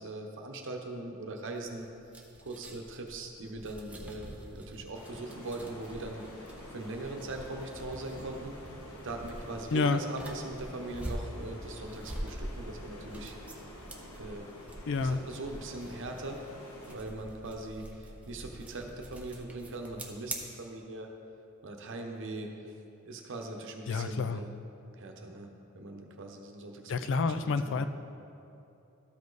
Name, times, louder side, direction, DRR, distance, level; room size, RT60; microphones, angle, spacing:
voice 1, 0.0-1.9 2.4-8.6 9.0-13.6 14.2-14.5 15.0-16.5 16.9-21.1 21.6-22.8 23.0-24.6 25.0-27.9, right 2 dB, 60° right, 3 dB, 0.9 m, -41 dB
sound 1, 1.5-20.4, right 1 dB, 5° right, 0.7 m, -45 dB
sound 2, 4.9-16.9, left 1 dB, 75° left, 1.2 m, -49 dB
voice 2, 14.9-15.2 23.9-24.4 26.9-27.9, left 4 dB, 60° left, 10 dB, 0.4 m, -28 dB
13.5 x 5.2 x 4.0 m, 2.7 s
head